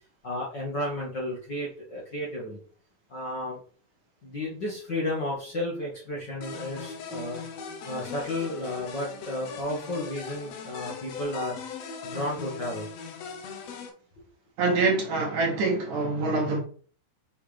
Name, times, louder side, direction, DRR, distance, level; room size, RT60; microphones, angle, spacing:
voice 1, 0.2-2.6 3.1-3.6 4.2-7.4 7.9-11.6 12.0-12.9, left 1 dB, 40° left, 1.7 m, -32 dB
sound 1, 6.4-13.9, left 5 dB, 75° left, 1.5 m, -39 dB
voice 2, 14.6-16.6, right 3 dB, 65° right, 2.6 m, -25 dB
6.2 x 5.9 x 3.4 m
omnidirectional pair, 4.2 m